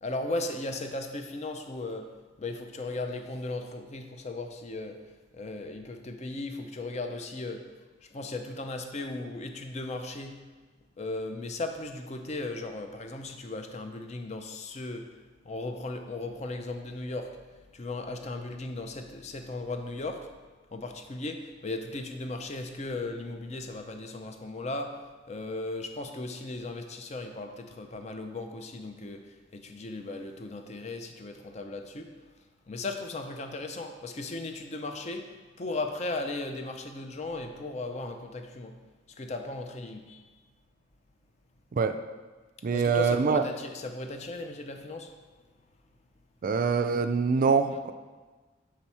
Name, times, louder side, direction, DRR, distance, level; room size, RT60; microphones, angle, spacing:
voice 1, 0.0-5.0 5.3-7.7 8.0-10.4 11.0-15.1 15.4-17.4 17.7-20.3 20.7-32.3 32.7-38.8 39.1-40.3 42.7-45.1, left 2 dB, 35° left, 6 dB, 0.5 m, -37 dB
voice 2, 42.6-43.4 46.4-47.9, right 5 dB, 45° right, 9 dB, 0.3 m, -24 dB
6.1 x 4.6 x 4.2 m, 1.3 s
head